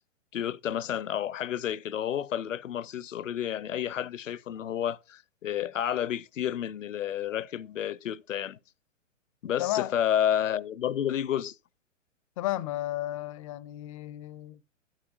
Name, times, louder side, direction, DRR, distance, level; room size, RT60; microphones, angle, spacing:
voice 1, 0.3-8.6 9.4-11.5, left 10 dB, 75° left, 0.6 m, -30 dB
voice 2, 9.6-9.9 12.4-14.6, left 15 dB, 25° left, 0.5 m, -33 dB
14.0 x 8.9 x 2.3 m
figure-of-eight pair, 120°, 39 cm